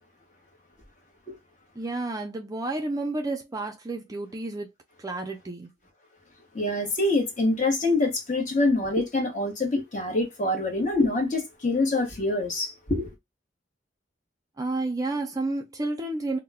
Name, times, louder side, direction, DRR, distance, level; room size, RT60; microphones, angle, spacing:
voice 1, 1.8-4.7 5.0-5.7 14.6-16.4, right 2 dB, 20° right, 0.4 m, -31 dB
voice 2, 6.5-13.1, left 2 dB, 40° left, 0.8 m, -25 dB
2.2 x 2.0 x 3.3 m
head